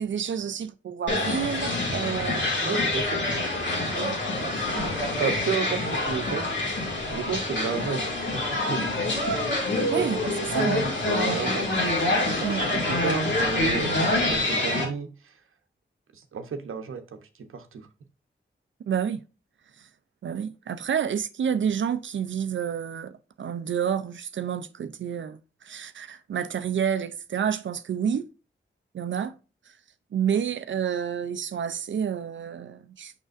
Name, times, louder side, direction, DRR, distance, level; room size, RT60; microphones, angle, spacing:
voice 1, 0.0-2.5 3.9-4.2 4.5-4.9 9.9-10.8 12.4-12.6 18.9-19.2 20.2-23.1 23.4-25.4 25.6-28.3 28.9-29.3 30.1-33.1, right 8 dB, 65° right, 0.5 m, -29 dB
sound 1, 1.1-14.9, left 2 dB, 60° left, 2.2 m, -26 dB
voice 2, 2.6-3.2 5.2-6.5 7.1-8.1 8.3-8.9 9.7-11.7 12.2-15.3 16.1-17.2 17.5-17.9, right 6 dB, 80° right, 0.9 m, -32 dB
6.4 x 6.0 x 2.5 m
cardioid pair, 60°, 21 cm